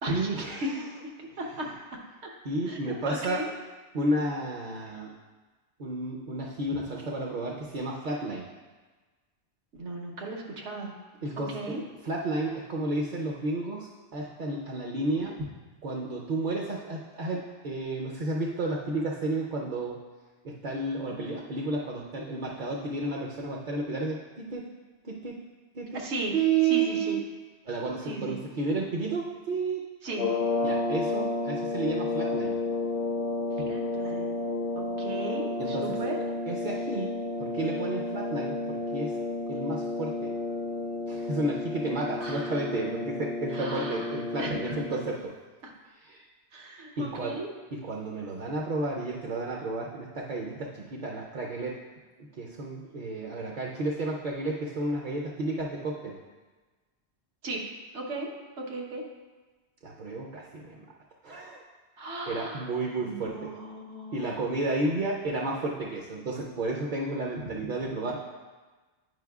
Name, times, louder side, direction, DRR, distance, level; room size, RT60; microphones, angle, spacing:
voice 1, 0.1-0.7 2.4-3.4 3.9-5.1 5.8-8.5 11.2-11.7 12.0-15.4 15.8-20.0 20.4-24.6 25.0-25.4 25.7-26.0 26.3-27.2 27.7-29.8 30.6-32.6 35.6-36.0 36.5-37.1 37.4-39.2 39.5-40.3 41.1-45.3 46.0-46.2 47.0-47.4 47.7-51.8 52.4-56.2 59.8-60.8 61.2-61.6 62.3-63.5 64.1-68.2, right 2 dB, 50° right, -2 dB, 0.7 m, -32 dB
voice 2, 1.2-2.0 2.7-3.5 9.8-10.9 11.5-11.8 25.9-26.3 26.6-27.2 28.0-28.4 30.0-30.3 33.6-34.3 34.7-36.2 42.2-42.6 43.5-44.8 45.6-45.7 46.5-47.5 57.4-57.6 57.9-58.3 58.6-59.0 62.0-62.7 63.0-64.2, right 2 dB, 80° right, -1 dB, 1.2 m, -36 dB
sound 1, 30.1-45.2, left 3 dB, 65° left, 0.8 m, -31 dB
9.3 x 5.3 x 2.3 m, 1.3 s
omnidirectional pair, 1.1 m